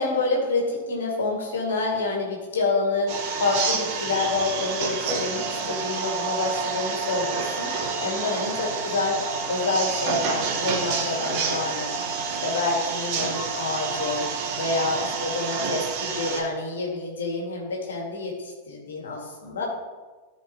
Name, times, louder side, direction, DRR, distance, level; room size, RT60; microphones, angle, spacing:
voice 1, 0.0-9.2 9.5-12.0 12.4-14.3 14.6-19.6, left 3 dB, 65° left, -1 dB, 2.1 m, -28 dB
sound 1, 3.1-16.4, right 5 dB, 45° right, 1.2 m, -29 dB
14.0 x 4.7 x 3.0 m, 1.3 s
figure-of-eight pair, 90°, 0 cm